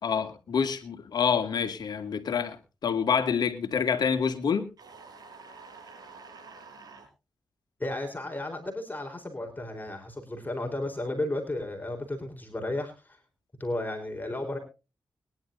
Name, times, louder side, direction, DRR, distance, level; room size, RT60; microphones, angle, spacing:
voice 1, 0.0-4.7, left 6 dB, 75° left, 8 dB, 2.2 m, -27 dB
sound 1, 4.8-7.1, right 4 dB, 65° right, 6.3 m, -48 dB
voice 2, 7.8-13.2 13.6-14.6, left 1 dB, 25° left, 3 dB, 4.0 m, -33 dB
22.0 x 11.0 x 2.6 m, 0.31 s
supercardioid pair, 45°, 7 cm